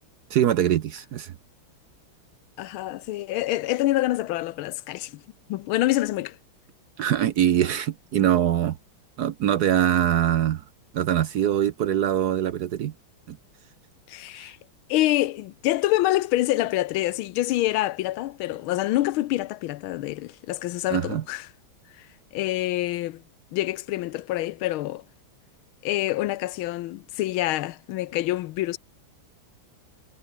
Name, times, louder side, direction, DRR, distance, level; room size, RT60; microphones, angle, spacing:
voice 1, 0.3-1.3 7.0-8.8 9.2-10.6 10.9-12.9 13.3-13.4 14.4-14.5 20.9-21.2, right 10 dB, 65° right, 1.1 m, -23 dB
voice 2, 2.6-5.2 5.5-6.4 14.1-14.6 14.9-21.5 22.3-23.2 23.5-25.0 25.8-28.8, left 16 dB, 85° left, 1.5 m, -26 dB
omnidirectional pair, 2.3 m